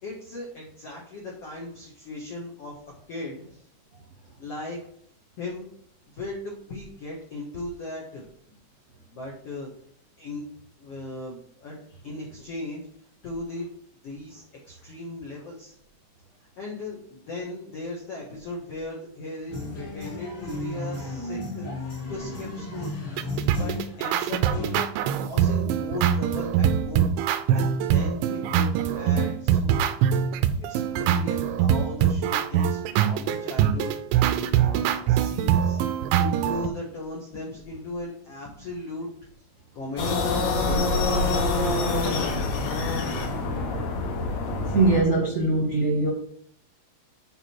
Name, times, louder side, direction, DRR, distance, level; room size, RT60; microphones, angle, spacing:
voice 1, 0.0-2.7 3.1-3.6 4.4-4.8 5.4-5.7 6.1-8.2 9.1-9.7 10.2-10.4 10.8-11.8 12.0-12.8 13.2-13.7 14.0-15.7 16.6-21.7 22.1-22.9 23.6-24.7 25.2-27.1 27.5-29.9 30.7-34.0 34.6-35.8 36.1-39.1 39.7-40.2 40.6-40.9, left 2 dB, 90° left, -2 dB, 1.3 m, -37 dB
sound 1, 19.5-24.8, left 1 dB, 45° left, 1.6 m, -34 dB
sound 2, 23.2-36.7, right 9 dB, 85° right, 2.8 m, -23 dB
sound 3, 40.0-45.0, left 3 dB, 65° left, 3.3 m, -25 dB
voice 2, 44.7-46.1, right 3 dB, 50° right, -3 dB, 1.1 m, -21 dB
8.9 x 4.8 x 4.5 m, 0.65 s
omnidirectional pair, 5.2 m